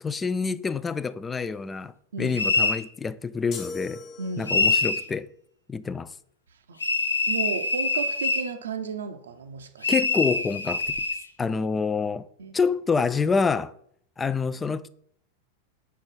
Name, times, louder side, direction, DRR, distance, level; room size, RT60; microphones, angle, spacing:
voice 1, 0.0-4.0 4.4-5.3 5.7-6.1 9.9-10.8 11.4-12.3 12.5-13.7 14.2-14.9, left 5 dB, 15° left, 0.3 m, -27 dB
sound 1, 2.4-2.8 4.5-5.1 6.8-8.5 9.8-11.2, left 3 dB, 80° left, 0.5 m, -24 dB
sound 2, 3.5-4.9, left 4 dB, 30° left, 1.0 m, -39 dB
voice 2, 4.2-4.5 6.7-6.8 7.3-9.9 12.4-12.6, right 5 dB, 65° right, 0.6 m, -33 dB
4.7 x 4.4 x 5.6 m
figure-of-eight pair, 90°, 0 cm